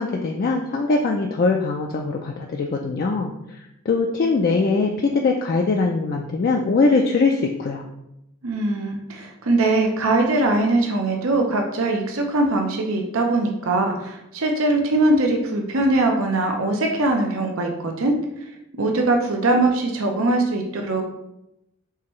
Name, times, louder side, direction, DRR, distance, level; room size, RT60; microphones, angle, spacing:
voice 1, 0.0-3.6 3.9-7.8, left 3 dB, 45° left, 1 dB, 0.3 m, -21 dB
voice 2, 8.4-18.2 18.8-21.0, right 2 dB, 80° right, 2 dB, 0.7 m, -21 dB
4.7 x 3.4 x 3.0 m, 0.86 s
head